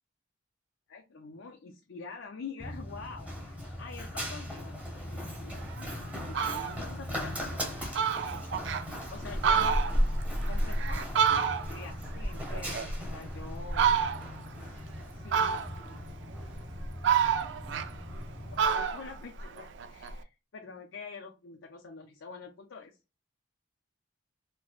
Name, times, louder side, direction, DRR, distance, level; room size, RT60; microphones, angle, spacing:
voice 1, 0.9-7.9 8.8-9.8 10.5-11.2 11.7-13.9 15.1-16.0 18.5-23.0, left 4 dB, 85° left, 2 dB, 0.6 m, -46 dB
Run, 2.6-18.6, equal, 5° right, 1.0 m, -36 dB
Fowl, 5.7-5.8 6.2-6.8 7.3-7.4 7.6-7.7 7.9-8.8 9.3-11.9 12.3-13.3 13.7-14.4 15.3-16.0 16.5-18.3 18.6-20.2, right 7 dB, 65° right, 0.4 m, -29 dB
4.5 x 2.1 x 2.4 m, 0.27 s
head